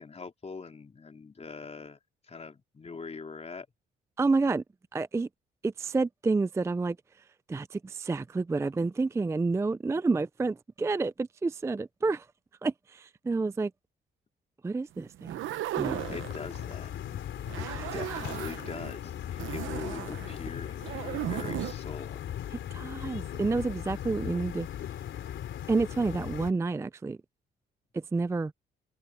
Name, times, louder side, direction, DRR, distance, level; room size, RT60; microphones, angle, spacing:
voice 1, 0.0-2.0 2.3-3.7 16.1-16.9 17.6-22.2, left 4 dB, 30° left, 3.7 m, -42 dB
voice 2, 4.2-4.6 4.9-5.3 5.6-7.0 7.5-12.3 12.6-13.7 14.6-15.4 15.8-16.0 17.7-18.2 22.7-24.7 25.7-27.2 27.9-28.5, right 3 dB, 15° right, 0.4 m, -29 dB
sound 1, 15.1-16.8 17.4-18.9 19.4-21.7, right 13 dB, 80° right, 1.0 m, -36 dB
sound 2, 15.8-26.5, left 11 dB, 75° left, 3.4 m, -38 dB
cardioid pair, 90°, 20 cm